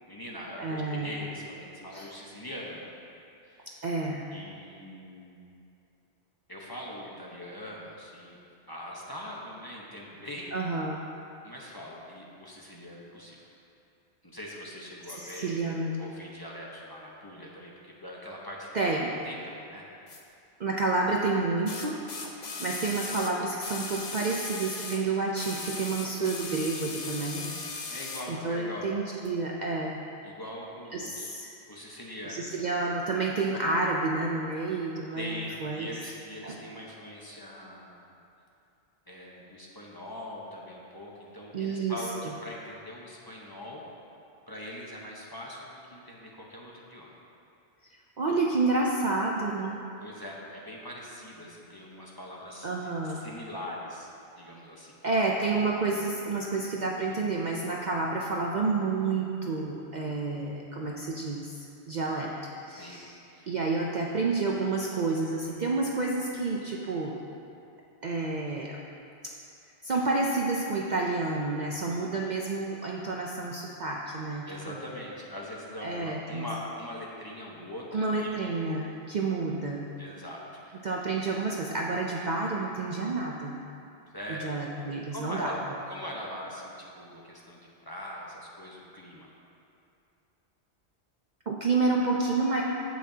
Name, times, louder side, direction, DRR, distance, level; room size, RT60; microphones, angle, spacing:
voice 1, 0.1-2.9 3.4-3.7 4.3-5.4 6.5-8.4 8.7-10.5 11.4-13.5 14.2-19.0 19.2-19.8 27.9-28.9 30.2-31.3 31.7-32.5 35.1-38.0 39.1-43.9 44.5-47.1 50.0-55.0 62.8-63.0 63.3-63.5 74.4-78.3 80.0-80.9 84.1-84.5 85.1-89.3, left 1 dB, 20° left, -4 dB, 1.0 m, -42 dB
voice 2, 0.6-1.1 1.9-2.1 3.8-4.3 10.5-11.0 15.1-15.9 18.7-19.1 20.6-22.0 22.6-27.9 28.3-30.0 30.9-31.5 32.3-35.9 36.4-36.6 41.5-42.0 48.2-49.8 52.6-53.2 55.0-61.6 61.9-63.2 63.5-67.2 68.0-68.8 69.8-74.8 75.8-76.5 77.9-79.9 80.8-83.6 84.3-85.6 91.5-92.6, right 3 dB, 50° right, -2 dB, 0.6 m, -29 dB
sound 1, 20.1-20.2 21.7-25.0 25.3-28.3 29.2-29.3, left 4 dB, 45° left, 0.8 m, -38 dB
15.5 x 5.9 x 2.8 m, 2.7 s
omnidirectional pair, 1.2 m